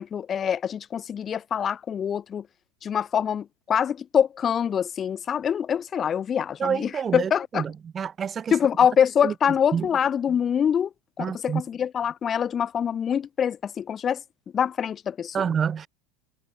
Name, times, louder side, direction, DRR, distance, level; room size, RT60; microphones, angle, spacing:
voice 1, 0.0-2.5 2.8-7.6 8.5-10.9 11.2-14.2 14.5-15.5, left 8 dB, 35° left, 5.7 m, -25 dB
voice 2, 6.6-8.5 9.2-9.3 9.7-9.9 11.2-11.6 15.3-15.9, right 7 dB, 30° right, 5.6 m, -28 dB
hypercardioid pair, 95°, 0 cm